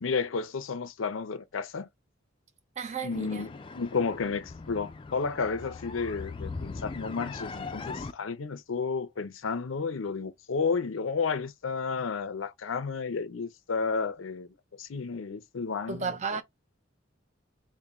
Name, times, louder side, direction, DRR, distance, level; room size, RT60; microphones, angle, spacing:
voice 1, 0.0-1.9 3.0-16.4, left 5 dB, 80° left, 0.6 m, -32 dB
voice 2, 2.8-3.5 15.9-16.4, right 5 dB, 35° right, 0.5 m, -33 dB
sound 1, 3.1-8.1, left 4 dB, 25° left, 0.4 m, -40 dB
3.6 x 2.2 x 4.1 m
head